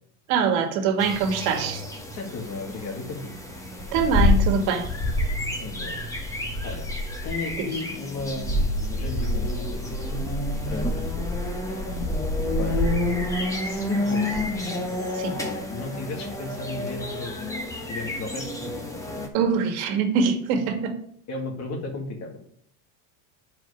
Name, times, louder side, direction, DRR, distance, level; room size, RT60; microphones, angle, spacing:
voice 1, 0.3-1.8 3.9-4.9 15.1-15.4 19.3-20.9, right 6 dB, 70° right, 6 dB, 1.8 m, -23 dB
sound 1, 1.0-19.3, left 1 dB, 5° left, 1.2 m, -28 dB
voice 2, 2.2-3.3 5.6-6.0 6.6-6.9 7.2-8.6 8.9-11.4 12.6-12.8 13.6-14.3 15.4-17.3 17.9-19.0 21.3-22.4, left 3 dB, 40° left, 2 dB, 2.1 m, -35 dB
8.9 x 4.9 x 5.0 m, 0.63 s
supercardioid pair, 135°, 43 cm